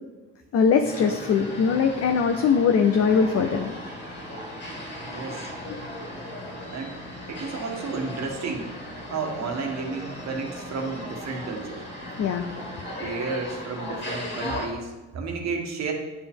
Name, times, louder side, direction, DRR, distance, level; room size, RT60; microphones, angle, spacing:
voice 1, 0.5-3.7 5.7-5.8 12.1-12.6, left 6 dB, 55° left, 5 dB, 0.6 m, -21 dB
sound 1, 0.8-14.7, left 1 dB, 35° left, 2.0 m, -37 dB
voice 2, 5.0-5.5 6.7-7.0 7.3-8.7 9.1-11.8 13.0-15.9, right 4 dB, 65° right, 2 dB, 1.4 m, -32 dB
9.5 x 5.0 x 3.6 m, 1.2 s
cardioid pair, 90°, 30 cm